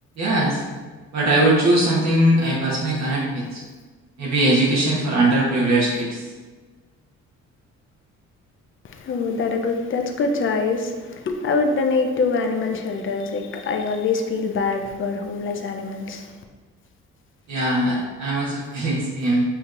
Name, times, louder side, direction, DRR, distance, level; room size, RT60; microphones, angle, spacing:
voice 1, 0.2-0.6 1.1-3.6 4.2-6.2 17.5-19.4, right 1 dB, 65° right, -5 dB, 1.2 m, -20 dB
voice 2, 8.9-16.3, left 4 dB, 40° left, 4 dB, 0.6 m, -24 dB
7.1 x 2.8 x 2.5 m, 1.3 s
cardioid pair, 90°, 30 cm